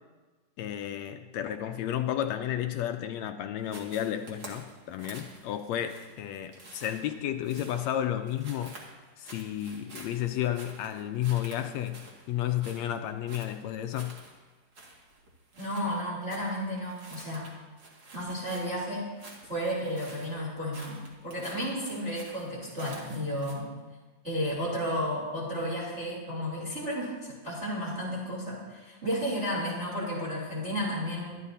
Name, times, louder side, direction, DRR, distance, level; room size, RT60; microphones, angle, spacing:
voice 1, 0.6-8.8 9.2-14.2, left 11 dB, 75° left, 7 dB, 1.7 m, -32 dB
sound 1, 3.6-23.5, right 2 dB, 40° right, 2.4 m, -50 dB
voice 2, 15.6-17.5 18.1-19.0 19.4-21.0 21.2-23.7 24.2-31.4, equal, 20° right, -5 dB, 3.1 m, -32 dB
23.5 x 11.5 x 2.8 m, 1.3 s
omnidirectional pair, 3.5 m